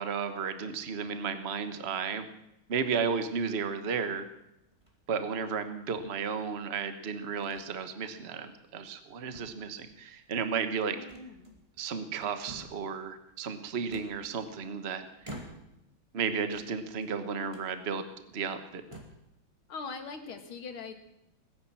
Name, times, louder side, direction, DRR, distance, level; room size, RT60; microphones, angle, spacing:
voice 1, 0.0-2.3 2.7-4.3 5.1-11.0 11.8-15.0 16.1-18.0 18.3-18.8, right 6 dB, 35° right, 9 dB, 1.3 m, -33 dB
sound 1, 4.7-5.1 5.9-6.7 7.4-7.7 8.1-8.2 8.7-9.1 9.3-10.0 11.1-11.8 12.1-12.9 13.9-14.7 15.2-15.9 16.4-17.1 17.5-17.7 18.3-18.4 18.8-19.3, right 1 dB, 15° right, 2.3 m, -49 dB
voice 2, 10.9-11.5 19.7-20.9, left 4 dB, 80° left, 6 dB, 2.6 m, -41 dB
18.5 x 10.5 x 7.5 m, 0.85 s
omnidirectional pair, 2.3 m